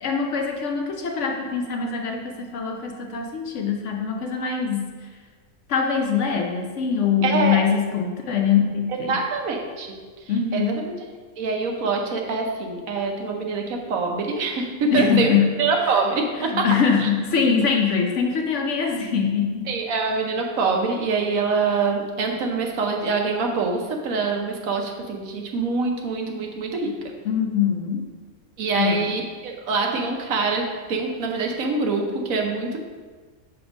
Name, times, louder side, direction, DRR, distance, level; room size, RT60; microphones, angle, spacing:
voice 1, 0.0-5.1 5.7-9.2 10.3-10.7 14.9-15.5 16.4-19.7 27.2-28.1 28.7-29.1, left 6 dB, 60° left, 2 dB, 0.9 m, -23 dB
voice 2, 7.2-7.6 9.1-10.0 10.5-10.9 11.4-15.3 15.6-16.8 17.0-17.1 19.7-27.0 28.6-32.8, right 4 dB, 70° right, 2 dB, 1.2 m, -25 dB
6.5 x 3.5 x 5.0 m, 1.4 s
omnidirectional pair, 1.5 m